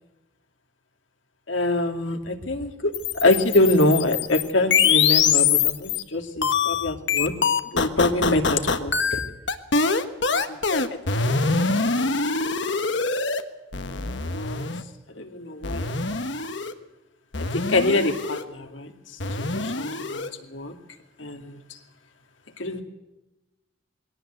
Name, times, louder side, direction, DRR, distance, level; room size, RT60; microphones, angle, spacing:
voice 1, 1.5-2.9 3.2-7.3 7.7-9.2 10.3-10.4 10.7-11.0 11.5-11.7 12.0-12.1 12.4-12.9 14.3-14.7 15.2-15.9 17.5-18.9 19.4-20.2 20.5-20.7 21.2-21.5 22.6-22.8, left 2 dB, 90° left, 5 dB, 2.4 m, -25 dB
sound 1, 2.9-6.0 6.4-13.4 13.7-14.8 15.6-16.7 17.3-18.4 19.2-20.3, left 5 dB, 70° left, 1.5 m, -24 dB
21.5 x 17.5 x 8.0 m, 1.0 s
head